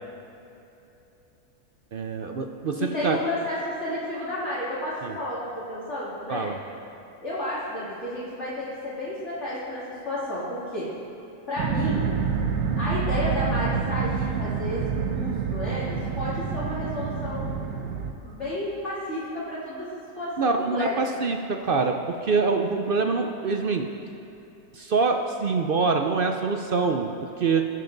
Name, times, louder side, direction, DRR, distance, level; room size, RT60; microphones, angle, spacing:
voice 1, 1.9-3.2 5.0-5.1 6.3-6.6 20.4-23.9 24.7-27.7, right 4 dB, 65° right, 4 dB, 0.5 m, -25 dB
voice 2, 2.8-6.5 7.2-10.9 11.5-12.1 12.8-14.8 15.0-17.5 18.1-19.9 20.2-21.2, left 1 dB, 45° left, -11 dB, 2.6 m, -31 dB
sound 1, 11.6-18.1, right 6 dB, 85° right, 1.4 m, -27 dB
21.5 x 7.6 x 3.9 m, 2.9 s
omnidirectional pair, 1.7 m